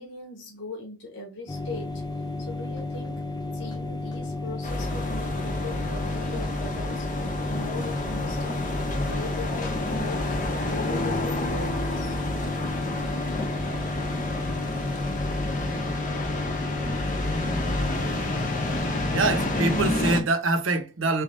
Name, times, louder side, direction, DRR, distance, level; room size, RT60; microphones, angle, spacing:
voice 1, 0.0-2.0 2.4-3.2 3.5-7.1 7.5-12.2, left 2 dB, 60° left, 1.1 m, -39 dB
sound 1, 1.5-19.9, left 2 dB, 20° left, 0.3 m, -32 dB
sound 2, 4.6-20.2, left 1 dB, 40° left, 0.7 m, -30 dB
sound 3, 10.7-17.3, left 2 dB, 90° left, 0.5 m, -40 dB
voice 2, 19.1-21.2, right 3 dB, 75° right, 0.8 m, -24 dB
3.4 x 3.3 x 3.1 m
head